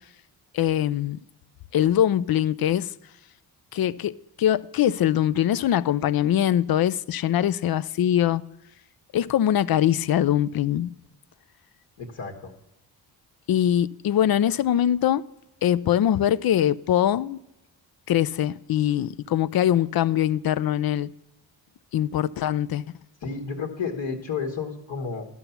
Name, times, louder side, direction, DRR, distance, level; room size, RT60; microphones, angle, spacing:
voice 1, 0.5-1.2 1.7-2.9 3.7-8.4 9.1-10.9 13.5-15.2 15.6-17.4 18.1-21.1 21.9-22.8, left 11 dB, 50° left, 0.5 m, -22 dB
voice 2, 12.0-12.5 23.2-25.3, left 5 dB, 65° left, 1.6 m, -31 dB
12.0 x 5.9 x 6.7 m
supercardioid pair, 55°, 48 cm